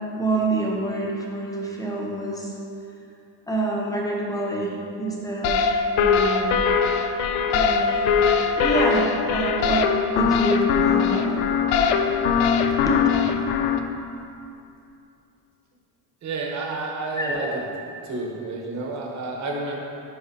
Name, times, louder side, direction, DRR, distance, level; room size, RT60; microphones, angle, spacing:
voice 1, 0.2-2.5 3.5-4.7 5.0-6.6 7.5-8.0 8.6-11.4 12.9-13.0 17.2-17.5, right 2 dB, 10° left, -2 dB, 0.3 m, -27 dB
sound 1, 5.4-13.8, left 6 dB, 75° left, 0.6 m, -21 dB
voice 2, 16.2-17.5 18.0-19.8, right 3 dB, 35° right, -1 dB, 1.0 m, -30 dB
11.0 x 4.8 x 2.8 m, 2.6 s
cardioid pair, 170°, 48 cm